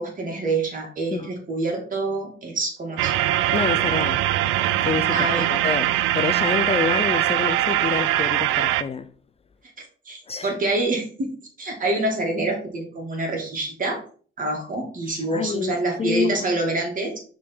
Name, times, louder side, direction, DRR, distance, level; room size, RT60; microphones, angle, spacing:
voice 1, 0.0-3.1 5.1-5.5 10.1-14.0 14.4-17.2, right 2 dB, 40° right, 2.4 m, -26 dB
sound 1, 3.0-8.8, right 13 dB, 90° right, 0.4 m, -22 dB
voice 2, 3.5-4.3 4.8-9.1 10.3-10.5 15.3-16.4, left 6 dB, 30° left, 0.4 m, -27 dB
6.1 x 3.8 x 4.4 m
cardioid pair, 90°, 20 cm